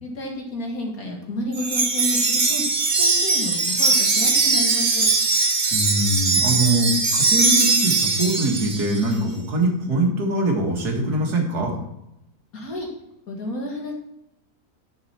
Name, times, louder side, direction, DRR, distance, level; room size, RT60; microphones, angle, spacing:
voice 1, 0.0-2.6 3.0-5.1 12.5-12.9 13.3-13.9, left 1 dB, 65° left, 0 dB, 2.4 m, -30 dB
Wind chime, 1.5-9.0, right 3 dB, 35° right, 0.9 m, -20 dB
voice 2, 5.7-11.7, right 1 dB, 75° right, 0 dB, 2.3 m, -23 dB
10.5 x 6.0 x 4.4 m, 0.85 s
omnidirectional pair, 1.7 m